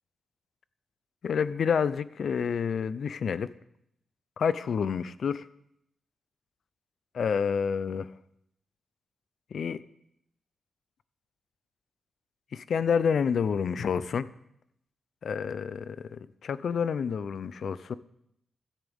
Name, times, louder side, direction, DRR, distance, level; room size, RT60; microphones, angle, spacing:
voice 1, 1.2-3.5 4.4-5.4 7.1-8.1 9.5-9.8 12.5-14.3 15.2-17.9, left 6 dB, 55° left, 16 dB, 0.5 m, -28 dB
16.0 x 13.0 x 3.5 m, 0.77 s
wide cardioid pair, 175°, 0 cm